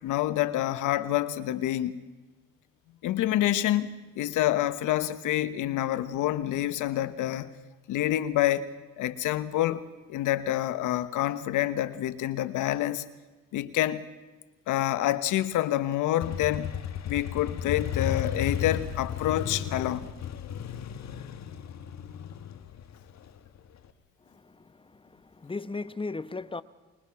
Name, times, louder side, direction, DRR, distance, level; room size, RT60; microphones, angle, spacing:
voice 1, 0.0-2.0 3.0-7.5 7.9-8.7 9.0-13.0 13.5-14.1 14.7-16.7 17.0-20.1, left 13 dB, 90° left, 1.3 m, -27 dB
Motorcycle, 16.2-23.9, left 8 dB, 60° left, 1.7 m, -34 dB
voice 2, 24.3-26.6, left 3 dB, 15° left, 1.0 m, -37 dB
25.0 x 21.5 x 6.0 m
cardioid pair, 90°, 30 cm